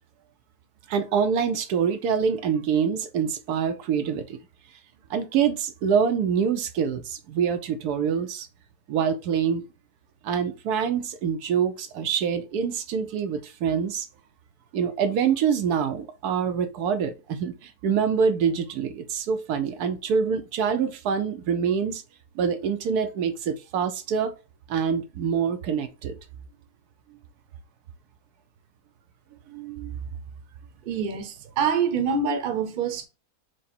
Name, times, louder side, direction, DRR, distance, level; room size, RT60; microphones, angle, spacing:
voice 1, 0.9-4.4 5.1-8.5 8.9-9.6 10.2-14.1 14.7-22.0 22.3-24.3 24.7-26.2 29.5-30.0, right 7 dB, 85° right, 1.2 m, -25 dB
voice 2, 30.8-33.1, right 6 dB, 45° right, 0.7 m, -26 dB
4.9 x 2.0 x 4.2 m
omnidirectional pair, 1.7 m